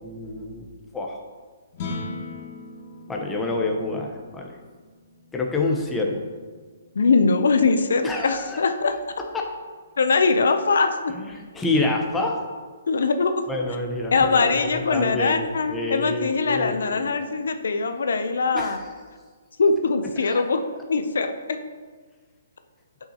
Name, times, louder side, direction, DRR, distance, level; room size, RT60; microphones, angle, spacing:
voice 1, 0.0-0.7 0.9-1.2 3.1-4.5 5.3-6.3 8.0-8.6 11.1-11.2 11.5-12.4 13.5-17.1 18.5-18.8 20.2-20.4, left 2 dB, 10° left, 0 dB, 0.8 m, -27 dB
sound 1, 1.7-8.1, left 3 dB, 40° left, 1.5 m, -40 dB
voice 2, 6.9-9.0 10.0-11.1 12.9-13.5 14.1-18.8 19.6-20.6 20.9-21.6, left 4 dB, 75° left, 8 dB, 0.5 m, -22 dB
8.9 x 5.7 x 2.9 m, 1.5 s
hypercardioid pair, 155°, 0 cm